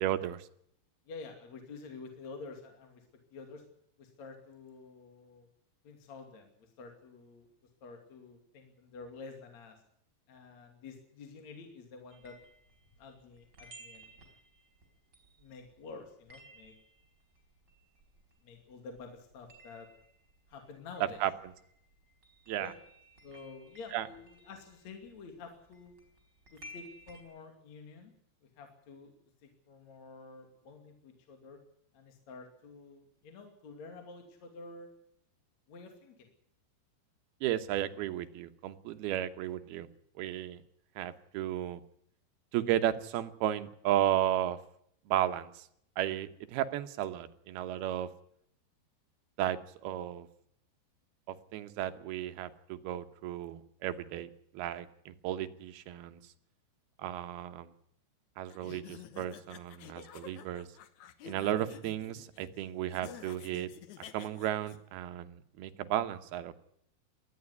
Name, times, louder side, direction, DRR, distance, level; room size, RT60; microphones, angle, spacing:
voice 1, 0.0-0.4 21.0-21.3 22.5-22.7 23.9-24.1 37.4-39.9 40.2-40.6 41.0-41.8 42.5-44.6 45.1-45.7 46.0-48.1 49.4-50.3 51.3-56.2 57.0-57.7 58.4-60.7 61.2-63.7 64.1-66.5, right 12 dB, 70° right, 9 dB, 2.8 m, -34 dB
voice 2, 1.1-3.1 3.3-3.6 4.0-5.5 5.8-7.5 7.8-9.8 10.3-12.4 13.0-14.2 15.4-16.7 18.4-19.9 20.5-21.2 22.6-22.7 23.2-25.9 26.5-28.2 28.4-29.1 29.4-31.6 31.9-34.9 35.7-36.3, left 4 dB, 45° left, 4 dB, 3.5 m, -49 dB
sound 1, 12.1-18.7 19.0-27.2, equal, 25° right, 4.9 m, -57 dB
sound 2, 58.5-64.8, left 9 dB, 70° left, 1.8 m, -51 dB
19.5 x 14.0 x 9.7 m, 0.71 s
omnidirectional pair, 5.1 m